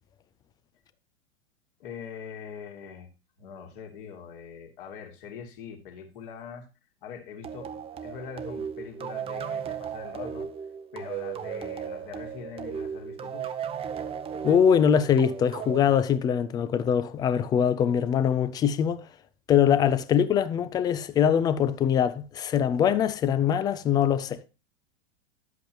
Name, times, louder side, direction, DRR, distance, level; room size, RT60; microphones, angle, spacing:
voice 1, 1.8-3.1 3.4-6.7 7.0-10.5 10.9-13.5, left 7 dB, 50° left, 2.4 m, -42 dB
sound 1, 7.4-16.7, right 7 dB, 15° right, 0.8 m, -36 dB
voice 2, 14.4-19.0 19.5-24.4, left 8 dB, 10° left, 0.4 m, -23 dB
11.5 x 8.1 x 2.9 m
figure-of-eight pair, 95°, 34 cm